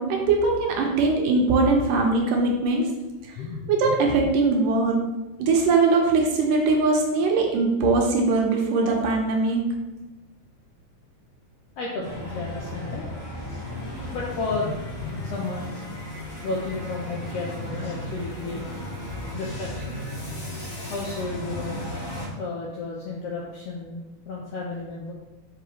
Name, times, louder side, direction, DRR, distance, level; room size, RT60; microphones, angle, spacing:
voice 1, 0.0-2.9 3.3-3.4 3.7-5.0 5.4-9.6, right 3 dB, 90° right, 0 dB, 2.6 m, -21 dB
voice 2, 3.4-4.0 11.8-13.0 14.1-15.7 16.4-18.8 19.3-20.0 20.9-21.8 22.4-25.1, left 3 dB, 80° left, -3 dB, 1.4 m, -32 dB
sound 1, 12.0-22.3, left 1 dB, 40° left, 2.2 m, -35 dB
5.9 x 5.4 x 3.1 m, 1.1 s
omnidirectional pair, 3.7 m